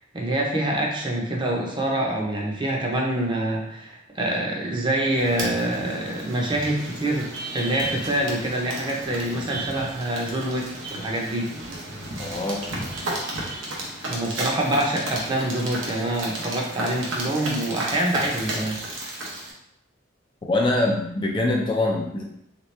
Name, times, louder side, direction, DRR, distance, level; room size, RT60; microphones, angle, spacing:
voice 1, 0.1-7.3 7.5-10.7 10.9-11.5 14.1-18.8, right 1 dB, 25° right, -1 dB, 0.6 m, -25 dB
sound 1, 5.1-19.5, right 1 dB, 80° right, 0.9 m, -33 dB
voice 2, 12.2-12.6 20.5-22.2, left 2 dB, 25° left, 0 dB, 0.3 m, -23 dB
3.3 x 3.0 x 3.2 m, 0.77 s
head